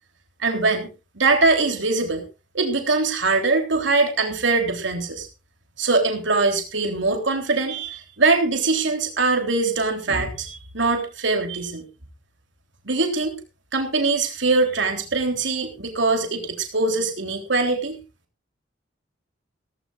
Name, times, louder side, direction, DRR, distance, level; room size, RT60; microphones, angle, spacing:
voice 1, 0.4-0.9 1.2-2.2 2.5-5.3 5.8-11.8 12.9-13.4 13.7-18.0, right 3 dB, 70° right, 3 dB, 3.5 m, -22 dB
17.0 x 16.0 x 2.5 m, 0.31 s
head